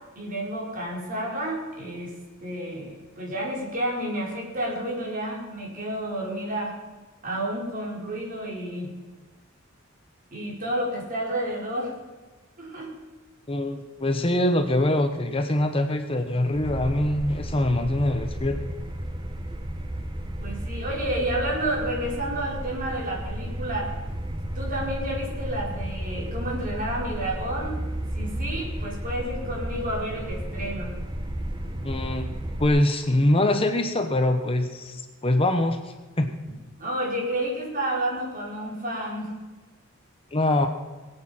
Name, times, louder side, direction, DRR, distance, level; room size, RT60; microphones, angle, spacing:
voice 1, 0.2-2.1 2.4-6.7 7.2-8.9 10.3-11.9 12.6-12.9 20.4-23.9 24.5-27.8 28.1-30.9 36.8-39.3, right 1 dB, 40° right, -3 dB, 4.9 m, -30 dB
voice 2, 13.5-18.6 31.8-32.3 32.6-35.8 36.2-36.3 40.3-40.7, left 1 dB, 25° left, 7 dB, 1.0 m, -23 dB
sound 1, 16.5-32.7, right 1 dB, 25° right, 1.0 m, -33 dB
21.5 x 8.7 x 5.7 m, 1.3 s
head